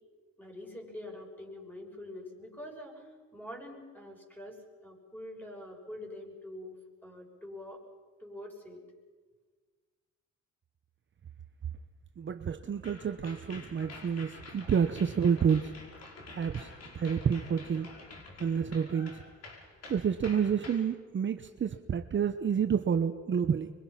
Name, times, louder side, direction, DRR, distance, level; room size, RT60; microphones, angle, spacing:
voice 1, 0.4-6.8 7.0-7.8 8.2-8.8, left 1 dB, 5° left, 1 dB, 6.2 m, -45 dB
voice 2, 12.2-15.7 16.3-17.9 18.4-19.2 19.9-23.7, right 7 dB, 40° right, 8 dB, 0.9 m, -29 dB
sound 1, 12.8-20.8, left 2 dB, 55° left, 5.4 m, -48 dB
26.0 x 23.5 x 5.9 m, 1.5 s
cardioid pair, 90°, 30 cm